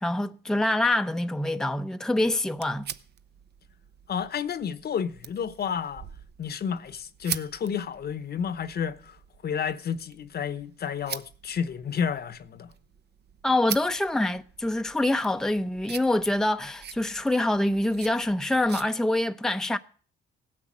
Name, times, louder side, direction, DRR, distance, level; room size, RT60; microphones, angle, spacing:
voice 1, 0.0-2.9 13.4-19.8, left 1 dB, 5° left, 0.7 m, -25 dB
sound 1, 2.2-18.9, right 9 dB, 55° right, 0.8 m, -43 dB
voice 2, 4.1-6.1 6.4-9.2 9.4-12.7, left 7 dB, 55° left, 1.0 m, -31 dB
16.0 x 9.7 x 7.4 m
cardioid pair, 90°, 20 cm